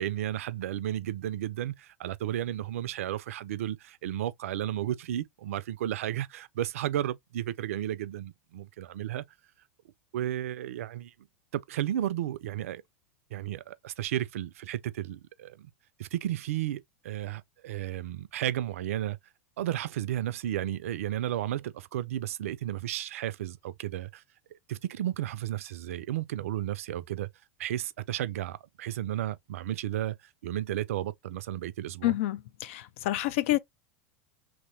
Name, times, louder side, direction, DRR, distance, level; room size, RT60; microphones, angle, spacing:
voice 1, 0.0-9.3 10.1-11.1 11.5-12.8 13.3-15.7 16.0-19.2 19.6-24.2 24.7-27.3 27.6-30.2 30.4-32.1, right 12 dB, 70° right, 0.4 m, -33 dB
voice 2, 32.0-33.6, left 16 dB, 60° left, 0.4 m, -28 dB
3.0 x 2.8 x 2.5 m
hypercardioid pair, 90°, 8 cm